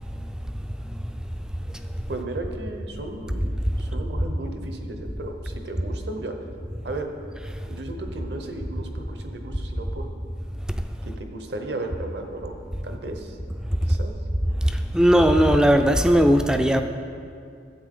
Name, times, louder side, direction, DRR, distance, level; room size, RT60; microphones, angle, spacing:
voice 1, 2.1-6.4 6.6-7.1 7.7-10.1 11.0-12.6 12.8-13.4 13.9-14.1, right 2 dB, 65° right, 4 dB, 1.0 m, -35 dB
voice 2, 14.9-16.8, equal, 5° right, 7 dB, 0.4 m, -17 dB
13.0 x 8.0 x 3.8 m, 2.4 s
head